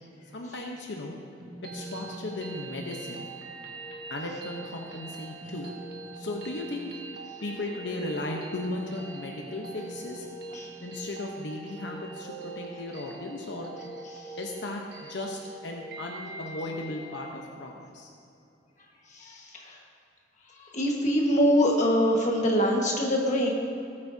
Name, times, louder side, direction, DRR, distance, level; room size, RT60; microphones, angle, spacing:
voice 1, 0.3-1.2 1.7-3.3 4.1-5.7 6.1-6.9 7.4-10.2 10.8-13.7 14.4-18.1, left 2 dB, 70° left, 0 dB, 0.9 m, -36 dB
sound 1, 1.4-17.4, right 3 dB, 60° right, 1.4 m, -42 dB
voice 2, 19.1-19.8 20.5-23.5, equal, 40° left, -1 dB, 1.5 m, -24 dB
18.5 x 8.6 x 2.8 m, 2.7 s
head